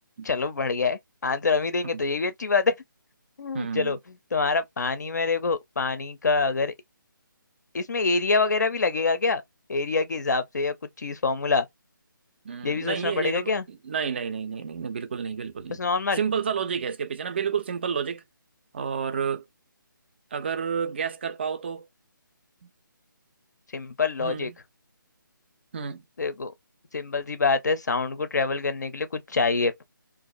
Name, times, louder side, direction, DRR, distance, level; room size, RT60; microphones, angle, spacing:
voice 1, 0.2-2.7 3.4-4.0 4.3-6.7 7.7-9.4 9.7-11.7 12.6-13.6 15.7-16.2 23.7-24.5 26.2-26.5 26.9-29.8, left 4 dB, 55° left, 0.5 m, -25 dB
voice 2, 3.5-4.0 12.4-15.8 16.1-18.2 18.7-19.4 20.3-21.9 22.6-22.7 24.2-24.6 25.7-26.0, right 6 dB, 30° right, 0.4 m, -30 dB
2.5 x 2.3 x 2.4 m
figure-of-eight pair, 150°, 11 cm